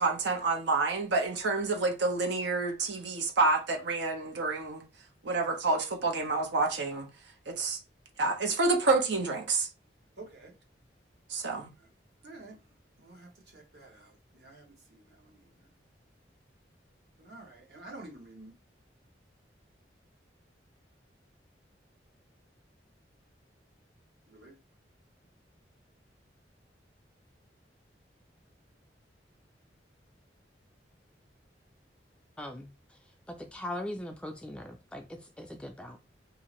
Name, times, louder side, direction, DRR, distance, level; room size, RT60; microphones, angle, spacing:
voice 1, 0.0-4.8 5.2-7.1 7.5-7.8 8.2-9.7 11.3-11.7, right 3 dB, 80° right, 0.7 m, -28 dB
voice 2, 10.2-10.5 12.2-12.6 13.0-15.5 17.2-18.5 24.3-24.5, right 2 dB, 65° right, 1.0 m, -50 dB
voice 3, 32.4-32.7 33.3-36.0, left 1 dB, 5° left, 0.3 m, -40 dB
2.7 x 2.5 x 3.0 m
head